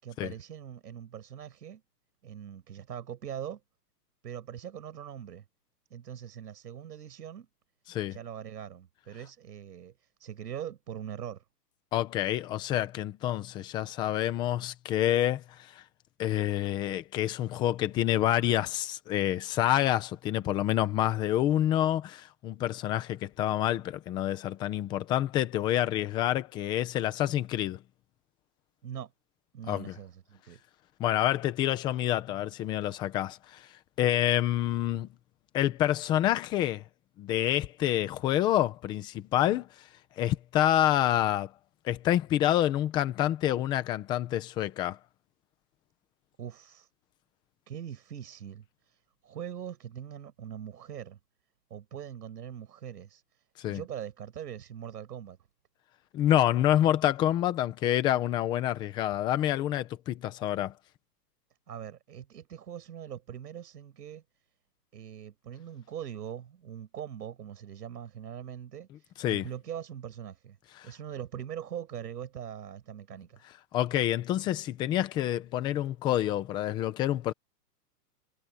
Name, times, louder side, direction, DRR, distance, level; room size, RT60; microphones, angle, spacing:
voice 1, 0.0-1.8 2.2-3.6 4.2-5.4 5.9-7.5 8.1-11.4 28.8-29.1 29.5-30.6 46.4-46.9 47.7-51.2 51.7-55.4 61.7-64.2 64.9-70.6 70.8-73.4, right 9 dB, 75° right, 5.8 m, -42 dB
voice 2, 11.9-15.8 16.2-27.8 29.7-29.9 31.0-33.6 34.0-35.1 35.5-36.8 37.2-39.7 40.2-41.5 41.8-45.0 53.6-53.8 56.1-60.7 69.2-69.5 70.8-70.9 73.7-77.3, left 12 dB, 10° left, 0.7 m, -27 dB
hypercardioid pair, 165°, 49 cm